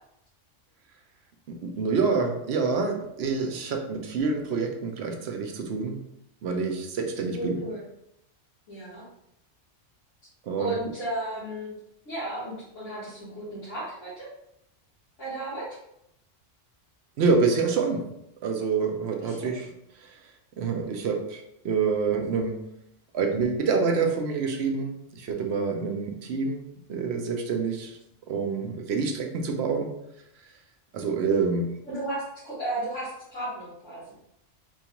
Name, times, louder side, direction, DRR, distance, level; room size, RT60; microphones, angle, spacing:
voice 1, 1.5-6.0 6.4-7.6 10.5-10.8 17.2-18.1 18.4-19.7 20.0-20.1 20.6-22.6 23.1-26.6 26.9-28.0 28.3-29.9 30.9-31.7, right 4 dB, 65° right, 3 dB, 0.8 m, -27 dB
voice 2, 7.3-7.8 8.7-9.0 10.6-11.7 12.0-14.3 15.2-15.7 19.2-19.7 31.9-34.1, right 1 dB, 90° left, -13 dB, 2.1 m, -34 dB
4.4 x 2.4 x 2.9 m, 0.78 s
omnidirectional pair, 1.2 m